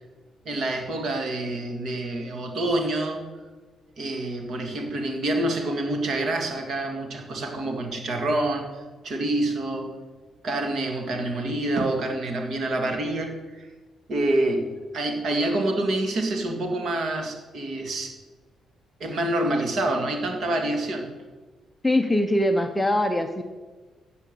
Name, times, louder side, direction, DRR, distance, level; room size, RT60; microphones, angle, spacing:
voice 1, 0.5-3.2 4.0-8.7 9.0-10.0 10.4-13.7 14.1-18.1 19.0-21.1, right 1 dB, 50° right, 3 dB, 2.1 m, -27 dB
voice 2, 21.8-23.4, left 1 dB, 5° left, 5 dB, 0.6 m, -22 dB
13.5 x 8.3 x 6.7 m, 1.3 s
cardioid pair, 160°, 0 cm